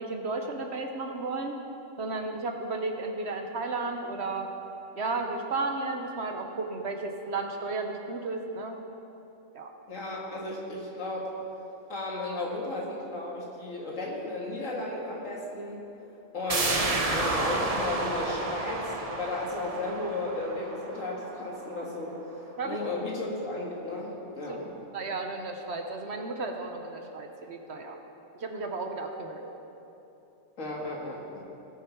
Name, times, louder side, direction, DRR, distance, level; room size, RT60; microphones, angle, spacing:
voice 1, 0.0-1.5 2.0-4.5 5.0-8.8 9.5-9.7 22.6-22.8 24.5-24.6 24.9-28.0 28.4-29.5, right 3 dB, 55° right, 3 dB, 1.1 m, -33 dB
voice 2, 9.9-11.3 11.9-15.9 16.3-22.2 22.6-24.7 30.6-31.4, left 2 dB, 70° left, -3 dB, 2.2 m, -34 dB
sound 1, 16.5-22.0 22.3-22.4, right 2 dB, 35° right, 0.8 m, -31 dB
19.5 x 6.6 x 4.6 m, 2.9 s
omnidirectional pair, 1.4 m